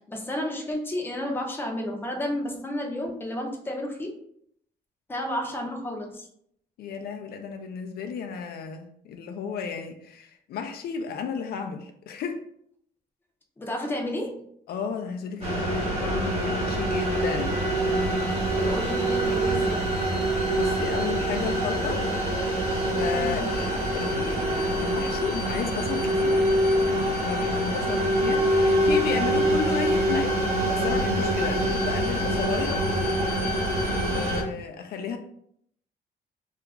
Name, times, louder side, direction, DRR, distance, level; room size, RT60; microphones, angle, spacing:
voice 1, 0.1-4.1 5.1-6.3 13.6-14.4 18.3-19.9 23.2-23.4, left 1 dB, 10° left, 1 dB, 0.6 m, -31 dB
voice 2, 6.8-12.4 14.7-17.5 20.2-22.1 22.8-26.5 26.7-32.8 33.8-35.2, left 6 dB, 65° left, 5 dB, 0.4 m, -33 dB
sound 1, 15.4-34.4, right 1 dB, 35° right, 1.1 m, -25 dB
2.8 x 2.4 x 3.4 m, 0.69 s
cardioid pair, 150°, 17 cm